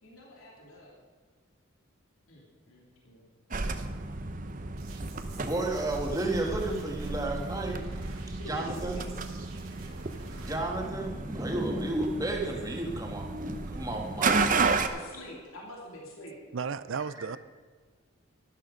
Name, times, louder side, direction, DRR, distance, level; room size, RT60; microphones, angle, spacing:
voice 1, 0.0-1.0 2.3-3.3 8.4-9.1 14.7-16.4, equal, 85° left, -2 dB, 3.0 m, -46 dB
sound 1, 3.5-14.9, right 4 dB, 40° right, 0.7 m, -33 dB
sound 2, 4.8-10.5, right 6 dB, 90° right, 2.4 m, -53 dB
voice 2, 5.3-7.9 8.3-9.1 10.4-14.6 17.2-17.3, right 2 dB, 15° right, 0 dB, 1.7 m, -32 dB
voice 3, 16.5-17.4, right 5 dB, 65° right, 15 dB, 0.5 m, -33 dB
12.5 x 12.0 x 5.1 m, 1.5 s
head